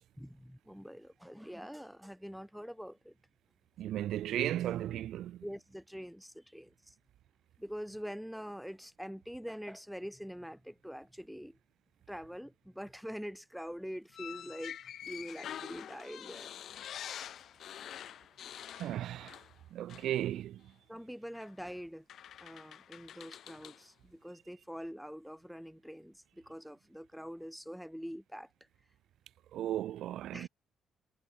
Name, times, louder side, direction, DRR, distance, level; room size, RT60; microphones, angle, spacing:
voice 1, 0.2-3.2 5.4-7.0 7.6-11.6 12.1-16.5 20.9-22.1 22.4-28.5 30.3-30.5, equal, ahead, 5.7 m, -45 dB
voice 2, 3.8-5.4 18.8-19.4 19.7-20.6 29.5-30.5, right 12 dB, 70° right, 3.7 m, -35 dB
sound 1, 14.1-19.6 19.9-20.1 21.3-21.5 22.1-23.8, left 10 dB, 55° left, 3.8 m, -46 dB
cardioid pair, 145°, 0 cm